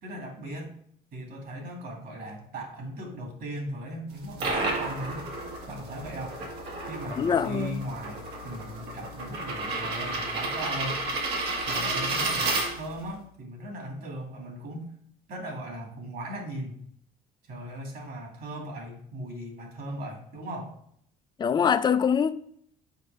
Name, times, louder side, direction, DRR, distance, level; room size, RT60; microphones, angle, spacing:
voice 1, 0.0-0.7 1.1-5.3 5.7-6.4 6.9-11.1 11.7-14.9 15.3-16.8 17.5-20.8, right 1 dB, 60° right, 2.3 m, -38 dB
sound 1, 4.1-13.1, right 2 dB, 85° right, 1.8 m, -32 dB
voice 2, 7.2-7.7 21.4-22.3, left 7 dB, 25° left, 0.4 m, -23 dB
6.6 x 5.1 x 3.4 m
cardioid pair, 110°, 17 cm